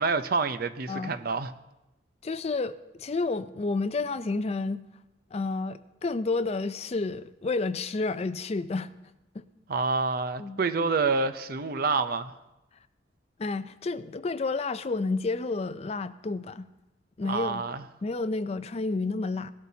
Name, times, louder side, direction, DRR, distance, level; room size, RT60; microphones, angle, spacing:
voice 1, 0.0-1.5 9.7-12.3 17.2-17.8, right 4 dB, 55° right, 0.6 m, -27 dB
voice 2, 2.2-4.8 5.3-8.9 9.3-9.4 10.4-10.6 13.4-16.7 17.2-17.6 18.0-19.5, left 3 dB, 35° left, 0.4 m, -30 dB
19.0 x 12.0 x 2.8 m
head